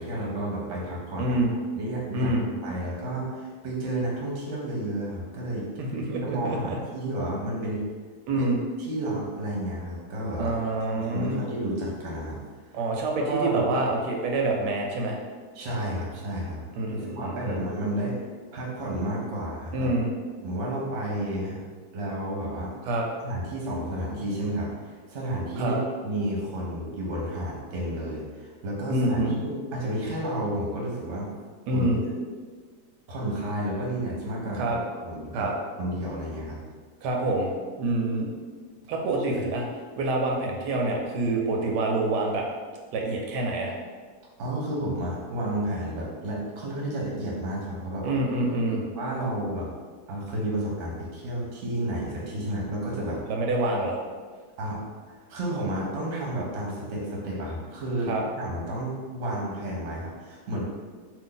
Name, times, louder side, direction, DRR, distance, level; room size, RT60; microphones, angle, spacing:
voice 1, 0.0-1.4 1.7-2.3 2.6-5.7 6.2-7.8 8.4-8.5 8.8-10.5 10.9-12.4 13.1-13.6 15.5-16.6 17.0-18.2 18.5-19.9 20.4-21.6 21.9-22.7 23.2-31.3 31.7-32.0 33.1-35.5 35.8-36.6 39.4-39.5 44.4-48.1 49.0-49.7 50.1-53.2 54.6-54.8 55.1-60.6, right 1 dB, 55° right, -3 dB, 1.0 m, -31 dB
voice 2, 1.2-1.5 2.1-2.5 5.9-6.8 8.3-8.6 10.4-11.4 12.7-15.2 16.8-17.6 19.7-20.1 22.8-23.0 25.6-25.8 28.9-29.4 31.7-32.0 34.5-34.8 35.3-35.5 37.0-37.5 37.8-38.3 38.9-39.6 40.0-42.5 42.9-43.7 48.0-48.8 53.3-54.0 58.1-58.2, right 2 dB, 90° right, 0 dB, 1.2 m, -26 dB
2.7 x 2.6 x 3.7 m, 1.5 s
omnidirectional pair, 1.8 m